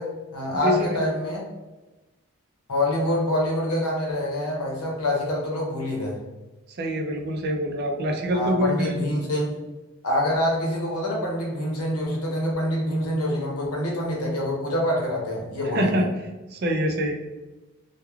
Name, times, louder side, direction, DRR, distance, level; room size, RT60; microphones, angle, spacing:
voice 1, 0.0-1.5 2.7-6.2 8.3-9.6 10.0-16.1, left 1 dB, 85° left, -2 dB, 0.8 m, -26 dB
voice 2, 0.6-1.1 6.8-8.9 15.7-16.1 16.5-17.1, equal, 45° right, 3 dB, 0.4 m, -25 dB
3.0 x 2.2 x 2.3 m, 1.1 s
head